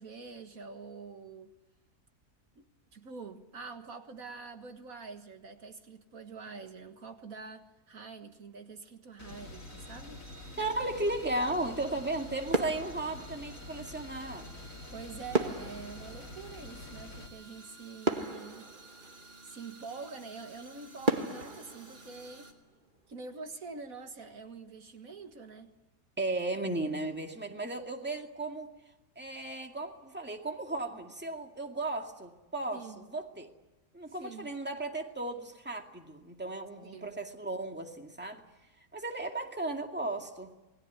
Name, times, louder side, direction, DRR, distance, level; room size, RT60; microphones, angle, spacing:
voice 1, 0.0-1.5 2.6-2.7 2.9-10.2 14.9-18.7 19.4-22.5 23.1-25.7 32.7-33.1 34.2-34.5 36.8-37.1, right 4 dB, 70° right, 2.0 m, -46 dB
sound 1, 9.2-17.3, left 3 dB, 60° left, 2.7 m, -47 dB
sound 2, 9.3-22.5, right 3 dB, 50° right, 3.3 m, -54 dB
voice 2, 10.6-14.5 26.2-28.7 29.2-33.5 33.9-38.4 38.9-40.5, right 2 dB, 5° right, 2.2 m, -35 dB
sound 3, 12.5-14.0 15.3-17.2 17.7-17.8 18.0-19.6 20.2-20.3 21.0-22.9 23.3-23.5, right 2 dB, 35° right, 1.9 m, -35 dB
28.0 x 21.0 x 9.5 m
omnidirectional pair, 1.6 m